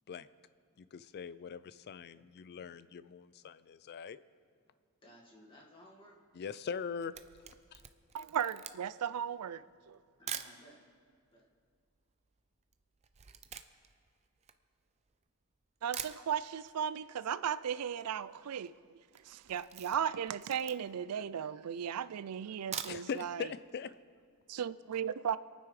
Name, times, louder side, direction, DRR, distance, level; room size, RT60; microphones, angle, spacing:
voice 1, 0.8-4.2 6.3-7.2 7.7-7.8 22.9-23.9, left 6 dB, 45° left, 0.4 m, -41 dB
voice 2, 2.2-2.7 3.4-3.5 5.0-6.2 10.0-10.8 11.3-11.5, equal, 25° left, 2.0 m, -59 dB
Camera, 6.9-10.6 11.3-11.4 11.6-15.2 15.6-15.7 15.9-16.8 17.1-17.2 17.5-17.6 17.7-18.2 18.5-18.7 19.1-21.1 21.6-21.7 22.5-23.3 23.7-23.8 24.1-24.2, right 9 dB, 30° right, 0.5 m, -45 dB
voice 3, 8.1-10.0 15.8-19.0 19.3-23.5 24.5-25.4, right 8 dB, 85° right, 0.4 m, -36 dB
27.0 x 9.4 x 3.3 m
head